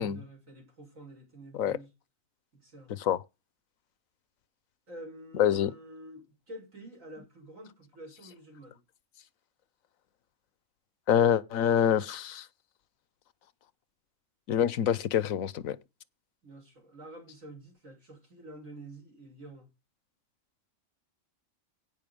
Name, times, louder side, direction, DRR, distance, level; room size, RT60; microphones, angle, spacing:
voice 1, 0.0-1.9 2.5-2.9 4.9-8.8 16.4-19.7, right 1 dB, 85° right, 7.1 m, -48 dB
voice 2, 5.3-5.7 11.1-12.5 14.5-15.8, left 9 dB, 90° left, 1.3 m, -26 dB
16.5 x 5.7 x 5.2 m
omnidirectional pair, 1.4 m